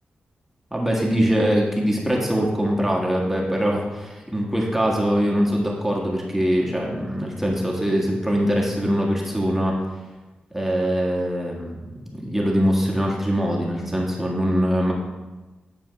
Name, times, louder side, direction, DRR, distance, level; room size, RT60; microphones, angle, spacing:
voice 1, 0.7-9.8 10.5-14.9, equal, 5° right, -2 dB, 1.6 m, -22 dB
9.4 x 4.7 x 3.3 m, 1.1 s
cardioid pair, 45°, 4 cm